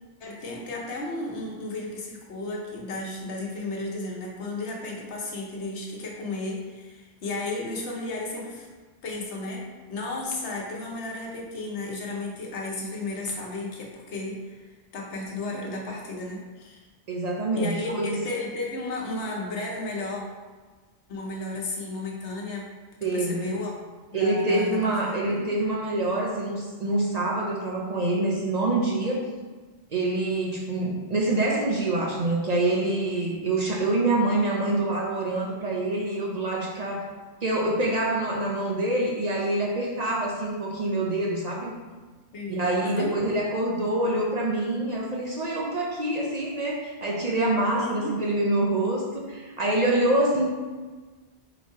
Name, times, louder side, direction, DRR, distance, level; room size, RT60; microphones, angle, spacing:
voice 1, 0.2-8.7 9.0-14.7 14.9-16.8 17.6-20.2 21.1-22.7 23.1-23.7 24.1-25.4 42.3-43.1 47.8-48.2, left 2 dB, 85° left, -1 dB, 1.1 m, -33 dB
voice 2, 17.1-18.2 23.0-23.5 24.1-29.3 29.9-37.1 37.4-41.7 42.5-50.4, right 2 dB, 45° right, -2 dB, 0.6 m, -26 dB
3.9 x 2.7 x 4.6 m, 1.3 s
omnidirectional pair, 1.1 m